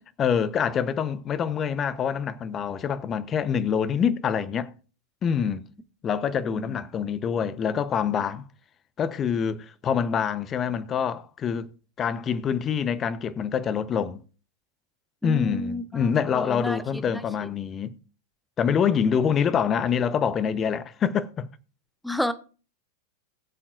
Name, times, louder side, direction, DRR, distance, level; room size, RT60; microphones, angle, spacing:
voice 1, 0.2-4.7 5.2-5.7 6.0-8.4 9.0-11.7 12.0-14.2 15.2-17.9 18.6-21.5, left 7 dB, 30° left, 0.9 m, -26 dB
voice 2, 6.4-6.8 15.2-17.5 22.0-22.3, left 1 dB, ahead, 1.1 m, -32 dB
21.0 x 7.3 x 2.6 m
figure-of-eight pair, 95°, 0 cm